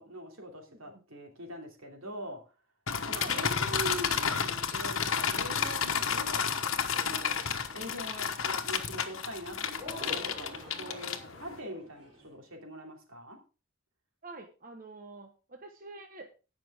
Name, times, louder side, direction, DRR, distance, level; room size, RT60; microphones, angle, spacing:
voice 1, 0.0-2.4 3.0-7.4 7.7-13.4, equal, 80° right, 2 dB, 3.0 m, -43 dB
voice 2, 0.7-1.0 3.1-3.4 14.2-16.4, right 2 dB, 40° right, 4 dB, 1.1 m, -47 dB
sound 1, 2.9-11.6, left 7 dB, 75° left, 1.2 m, -31 dB
sound 2, 6.9-8.1 9.8-12.3, left 1 dB, 25° right, 6.5 m, -46 dB
17.5 x 6.0 x 3.6 m, 0.33 s
head